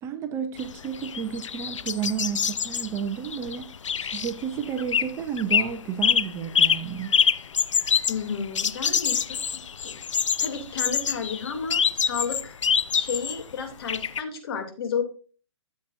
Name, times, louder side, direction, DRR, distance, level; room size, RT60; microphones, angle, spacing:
voice 1, 0.0-3.7 4.0-7.1, right 8 dB, 20° right, 0.7 m, -31 dB
sound 1, 0.6-5.1 5.4-5.7 6.0-13.4 13.9-14.2, left 7 dB, 80° left, 0.6 m, -25 dB
voice 2, 8.1-10.0 10.4-12.6 13.0-15.0, left 6 dB, 50° left, 2.7 m, -32 dB
13.0 x 7.8 x 2.5 m
hypercardioid pair, 145°, 16 cm